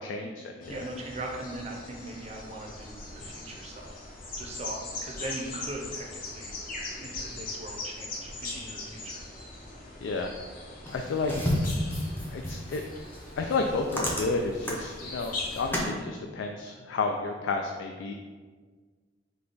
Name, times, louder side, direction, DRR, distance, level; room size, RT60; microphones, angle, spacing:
voice 1, 0.0-0.9 10.0-10.3 10.9-11.3 12.3-12.8 13.4-18.1, left 3 dB, 70° left, 3 dB, 0.3 m, -31 dB
sound 1, 0.6-15.8, left 2 dB, 45° left, 0.7 m, -41 dB
voice 2, 0.7-4.0 4.4-6.5 7.0-9.2 9.7-9.8, right 1 dB, 35° right, 0 dB, 0.6 m, -40 dB
sound 2, 10.9-15.9, left 1 dB, 10° left, 0.6 m, -32 dB
5.1 x 2.3 x 3.8 m, 1.5 s
head